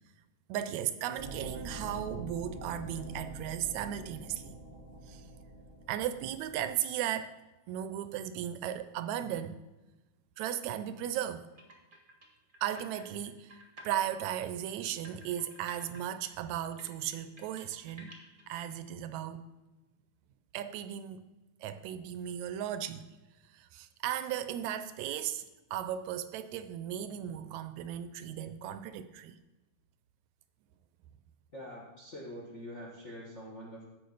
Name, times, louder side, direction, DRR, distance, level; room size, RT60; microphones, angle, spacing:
voice 1, 0.5-4.6 5.1-5.2 5.9-7.3 7.7-9.6 10.4-11.4 12.6-18.1 18.5-19.4 20.5-21.2 21.6-23.1 23.5-25.4 25.7-29.4, right 10 dB, 80° right, 11 dB, 1.7 m, -36 dB
sound 1, 1.2-6.7, right 1 dB, 30° left, 0.9 m, -45 dB
sound 2, 11.5-13.9 14.3-18.6, right 1 dB, 40° right, 0.7 m, -53 dB
voice 2, 31.5-33.8, equal, 80° left, -3 dB, 0.6 m, -45 dB
14.5 x 5.4 x 3.9 m, 1.1 s
omnidirectional pair, 3.6 m